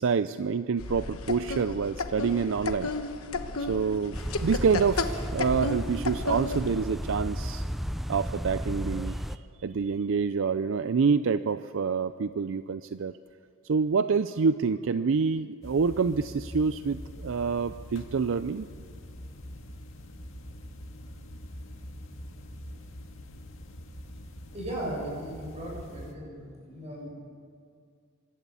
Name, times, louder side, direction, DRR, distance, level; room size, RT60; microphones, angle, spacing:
voice 1, 0.0-2.9 3.7-7.6 8.1-13.2 13.6-18.7, right 5 dB, 65° right, 12 dB, 0.4 m, -27 dB
sound 1, 0.8-6.7, left 3 dB, 85° left, 1.2 m, -33 dB
sound 2, 4.1-9.4, equal, ahead, 0.5 m, -34 dB
sound 3, 15.6-26.1, equal, 65° left, 2.0 m, -44 dB
voice 2, 24.5-27.1, right 1 dB, 30° right, -2 dB, 7.0 m, -37 dB
25.0 x 12.5 x 8.3 m, 2.2 s
head